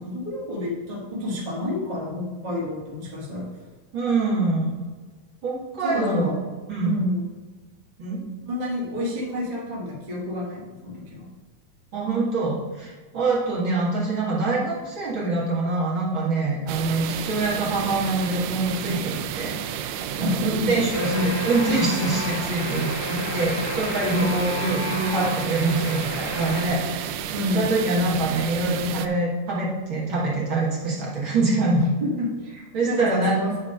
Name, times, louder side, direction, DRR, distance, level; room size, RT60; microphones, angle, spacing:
voice 1, 0.0-3.4 5.8-6.4 6.8-7.4 8.5-11.3 20.2-20.8 21.1-21.3 24.0-24.3 27.3-27.6 32.0-33.5, left 1 dB, 75° right, -5 dB, 0.4 m, -29 dB
voice 2, 3.9-4.8 5.4-6.4 6.7-7.0 8.0-8.2 11.9-19.6 19.8-31.9 32.7-33.4, right 2 dB, 45° right, -6 dB, 1.8 m, -25 dB
sound 1, 16.7-29.1, right 9 dB, 90° right, 1.8 m, -32 dB
Alarm, 20.9-26.7, left 2 dB, 65° left, 1.4 m, -32 dB
10.0 x 3.6 x 5.4 m, 1.4 s
omnidirectional pair, 4.2 m